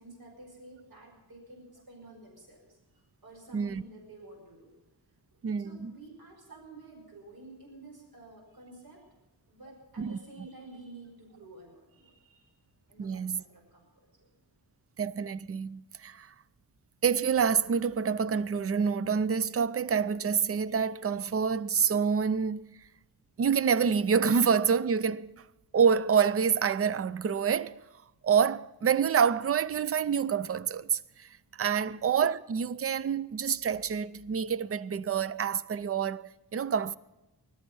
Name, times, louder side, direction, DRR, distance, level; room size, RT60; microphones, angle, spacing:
voice 1, 0.0-4.7 5.6-9.1 9.5-12.6 12.9-13.9 14.2-14.3, right 2 dB, 60° right, 5.4 m, -51 dB
voice 2, 5.4-5.9 10.0-10.5 13.0-13.4 15.0-16.3 17.0-22.8 23.4-25.5 25.7-27.8 28.2-36.9, right 6 dB, 35° right, 0.5 m, -27 dB
20.5 x 12.5 x 5.4 m
wide cardioid pair, 170°, 41 cm